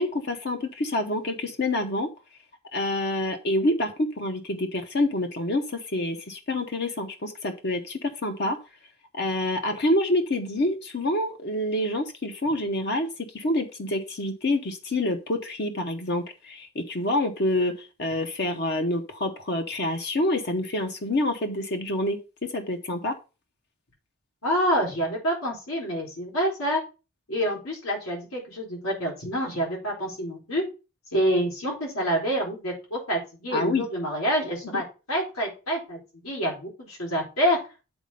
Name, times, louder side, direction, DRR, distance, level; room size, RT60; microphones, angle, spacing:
voice 1, 0.0-2.1 2.7-8.6 9.1-23.1 33.5-33.9 34.7-34.8, left 1 dB, 50° left, 5 dB, 0.8 m, -27 dB
voice 2, 24.4-26.8 27.3-30.6 31.1-34.8 35.1-36.0 36.2-37.6, equal, 85° left, -2 dB, 4.1 m, -27 dB
8.0 x 4.2 x 5.3 m, 0.31 s
head